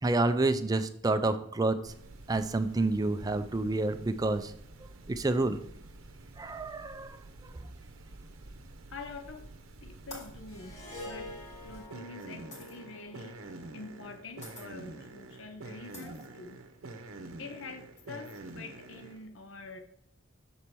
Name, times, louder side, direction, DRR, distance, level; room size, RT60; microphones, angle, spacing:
voice 1, 0.0-1.9 2.3-4.5 4.8-5.6 6.4-7.7, right 2 dB, 20° right, 10 dB, 0.3 m, -29 dB
sound 1, 1.9-19.3, right 2 dB, 85° right, 0.7 m, -48 dB
voice 2, 8.9-9.5 9.8-10.8 11.0-13.4 13.7-16.6 17.4-19.8, left 3 dB, 65° left, 6 dB, 0.6 m, -46 dB
sound 2, 9.2-9.6 10.1-12.7 13.8-14.1 14.4-14.7 15.2-15.3 15.9-16.9, left 2 dB, 35° left, 2.6 m, -49 dB
Harp, 10.5-14.9, left 2 dB, 80° left, 2.0 m, -48 dB
6.8 x 4.2 x 4.5 m, 0.73 s
head